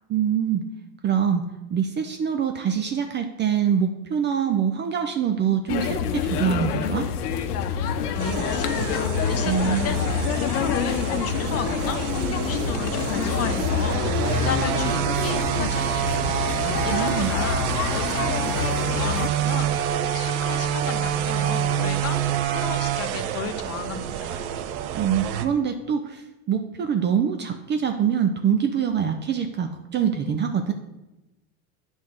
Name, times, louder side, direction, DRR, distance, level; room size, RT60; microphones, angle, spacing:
voice 1, 0.1-0.6 1.0-1.4 1.7-7.1 9.4-10.0 16.7-17.3 24.9-30.7, right 8 dB, 25° right, 6 dB, 0.5 m, -24 dB
sound 1, 5.7-19.3, left 7 dB, 80° left, 0.8 m, -27 dB
voice 2, 8.1-10.0 10.6-16.3 16.8-24.4, left 7 dB, 30° left, 8 dB, 0.8 m, -34 dB
sound 2, 8.2-25.5, right 10 dB, 65° right, 0.8 m, -27 dB
8.5 x 3.6 x 6.4 m, 0.99 s
hypercardioid pair, 110°, 46 cm